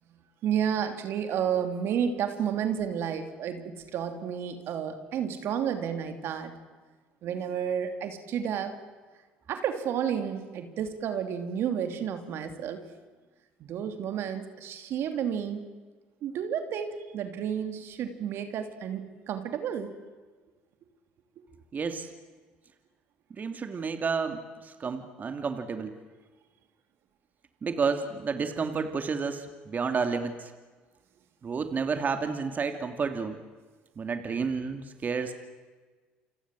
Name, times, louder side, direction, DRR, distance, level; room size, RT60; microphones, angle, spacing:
voice 1, 0.4-6.5 7.2-8.8 9.5-12.8 13.6-15.7 16.2-19.0 19.3-19.9, right 8 dB, 65° right, 7 dB, 3.1 m, -31 dB
voice 2, 21.7-22.1 23.3-26.0 27.6-30.5 31.4-33.4 34.0-35.3, right 5 dB, 40° right, 7 dB, 2.8 m, -31 dB
29.5 x 25.0 x 7.7 m, 1.3 s
hypercardioid pair, 70°, 5 cm